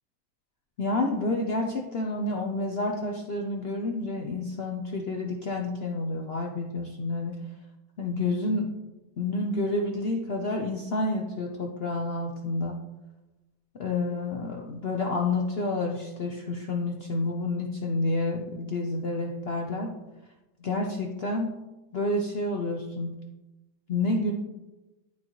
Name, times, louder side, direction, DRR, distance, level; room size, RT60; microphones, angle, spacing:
voice 1, 0.8-7.4 8.0-8.7 9.2-12.8 13.8-19.9 20.6-21.5 21.9-23.1 23.9-24.3, left 2 dB, 65° left, 1 dB, 0.6 m, -29 dB
11.5 x 3.9 x 3.0 m, 1.0 s
omnidirectional pair, 1.8 m